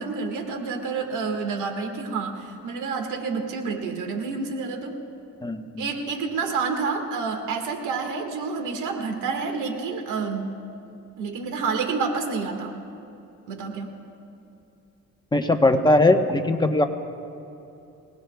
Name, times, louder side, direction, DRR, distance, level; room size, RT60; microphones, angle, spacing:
voice 1, 0.0-4.9 5.8-10.6 11.2-12.7 13.5-14.0, right 4 dB, 85° right, 4 dB, 1.8 m, -29 dB
voice 2, 5.4-5.8 15.3-16.9, left 2 dB, 15° left, 5 dB, 1.0 m, -20 dB
25.0 x 18.5 x 2.3 m, 2.8 s
cardioid pair, 90°, 30 cm